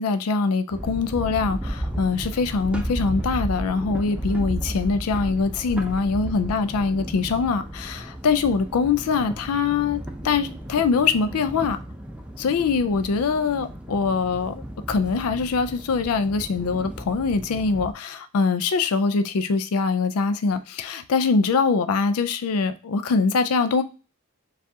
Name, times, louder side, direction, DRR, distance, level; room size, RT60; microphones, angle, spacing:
voice 1, 0.0-11.8 12.4-14.6 14.9-23.8, left 4 dB, 80° left, 0.4 m, -23 dB
sound 1, 0.7-17.9, equal, 5° right, 0.5 m, -34 dB
6.8 x 2.4 x 2.7 m
head